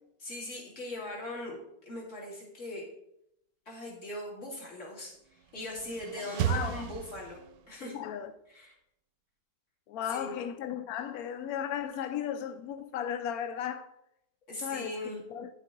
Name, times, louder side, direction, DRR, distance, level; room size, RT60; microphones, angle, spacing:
voice 1, 0.2-1.6 1.8-2.9 3.7-7.4 7.7-8.0 8.5-8.7 10.1-10.3 14.5-15.2, left 1 dB, 40° left, 2.6 m, -40 dB
sound 1, 5.4-7.8, right 10 dB, 80° right, 1.3 m, -34 dB
voice 2, 6.5-6.9 7.9-8.3 9.9-13.9 14.6-14.9 15.3-15.5, left 9 dB, 75° left, 0.8 m, -35 dB
9.5 x 6.6 x 3.8 m
omnidirectional pair, 2.0 m